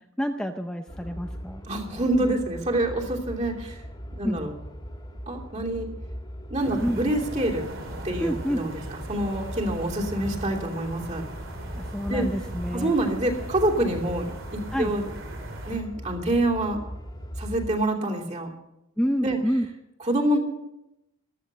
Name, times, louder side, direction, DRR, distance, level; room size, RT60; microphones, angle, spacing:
voice 1, 0.2-1.6 4.2-4.4 6.8-7.0 8.2-8.6 11.8-12.9 14.7-14.9 19.0-19.7, equal, 5° left, 5 dB, 0.6 m, -28 dB
sound 1, 0.9-17.7, equal, 20° left, 2.1 m, -39 dB
voice 2, 1.7-3.8 4.2-4.5 5.3-5.9 6.5-7.7 8.0-8.8 9.1-11.2 12.1-12.3 12.7-15.1 15.7-16.8 17.4-18.5 19.2-19.4 20.1-20.4, right 1 dB, 35° right, 1 dB, 2.9 m, -26 dB
sound 2, 6.6-15.8, right 1 dB, 65° right, 3.0 m, -40 dB
14.5 x 13.0 x 6.7 m, 0.87 s
head